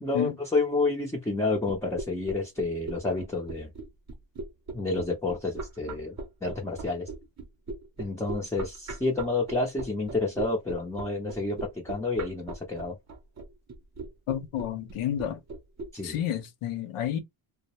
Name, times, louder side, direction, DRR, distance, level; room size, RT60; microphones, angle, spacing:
voice 1, 0.0-3.7 4.7-7.1 8.0-13.0 15.9-16.2, left 3 dB, 5° left, 0.5 m, -29 dB
sound 1, 1.7-15.9, right 3 dB, 35° right, 0.6 m, -38 dB
voice 2, 14.3-15.4 16.0-17.2, left 10 dB, 85° left, 0.8 m, -30 dB
2.2 x 2.0 x 2.9 m
cardioid pair, 115°, 50 cm